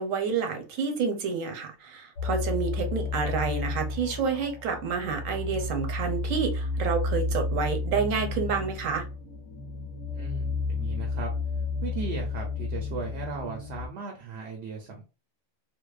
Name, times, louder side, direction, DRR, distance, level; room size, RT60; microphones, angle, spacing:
voice 1, 0.0-9.0, right 5 dB, 85° right, 5 dB, 1.1 m, -29 dB
sound 1, 2.2-13.9, left 3 dB, 80° left, 1.1 m, -32 dB
voice 2, 10.1-11.3 11.8-15.0, right 5 dB, 65° right, 1 dB, 0.8 m, -37 dB
2.6 x 2.1 x 2.3 m, 0.32 s
omnidirectional pair, 1.3 m